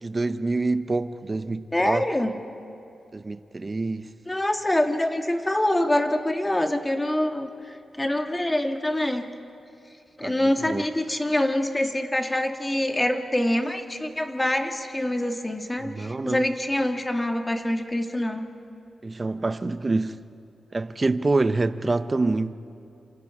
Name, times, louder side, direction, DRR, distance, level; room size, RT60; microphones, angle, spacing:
voice 1, 0.0-2.0 3.1-4.1 10.2-10.8 15.8-16.5 19.0-20.2 20.7-22.5, right 3 dB, 30° right, 0.8 m, -26 dB
voice 2, 1.7-2.3 4.3-9.3 10.2-18.5, left 1 dB, 15° left, 1.6 m, -25 dB
27.5 x 27.5 x 4.9 m
cardioid pair, 95°, 0 cm